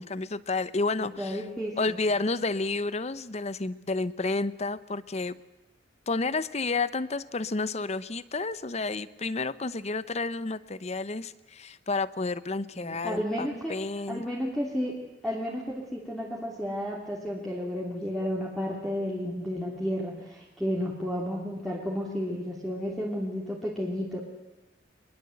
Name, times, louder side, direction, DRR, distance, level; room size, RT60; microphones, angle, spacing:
voice 1, 0.0-1.4 1.8-5.4 6.1-14.2, left 3 dB, 35° left, 16 dB, 0.7 m, -30 dB
voice 2, 1.0-2.0 12.7-13.7 14.1-15.0 15.2-24.2, equal, ahead, -4 dB, 2.9 m, -32 dB
24.0 x 21.0 x 7.9 m, 0.98 s
head